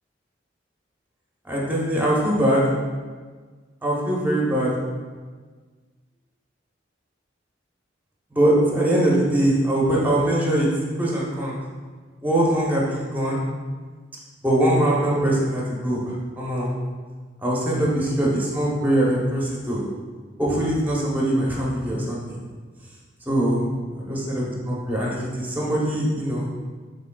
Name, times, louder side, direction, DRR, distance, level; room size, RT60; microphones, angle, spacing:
voice 1, 1.5-2.6 3.8-4.7 8.3-10.7 11.0-11.6 12.2-13.4 14.4-16.0 16.4-16.7 17.4-19.9 20.4-22.4 23.3-23.6 24.7-26.4, right 1 dB, 10° right, -5 dB, 0.8 m, -22 dB
6.2 x 3.3 x 2.3 m, 1.5 s
head